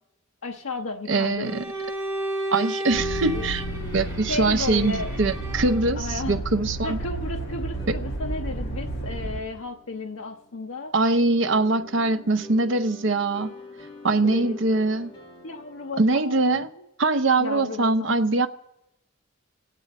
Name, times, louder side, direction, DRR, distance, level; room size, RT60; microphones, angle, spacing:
voice 1, 0.4-1.6 3.3-3.5 4.3-5.2 6.0-6.4 6.8-10.9 14.2-14.6 15.4-16.7 17.4-18.2, left 3 dB, 75° left, 0.8 m, -33 dB
voice 2, 1.1-1.6 2.5-3.6 3.9-7.0 7.9-8.0 10.9-13.5 14.0-15.1 16.0-16.7 17.0-18.5, right 3 dB, 60° right, 0.7 m, -22 dB
Bowed string instrument, 1.4-6.0, right 1 dB, 10° right, 2.1 m, -33 dB
sound 1, 2.9-9.4, right 1 dB, 55° left, 1.6 m, -32 dB
sound 2, 6.5-16.2, left 3 dB, 20° left, 1.9 m, -46 dB
26.0 x 9.1 x 4.2 m
head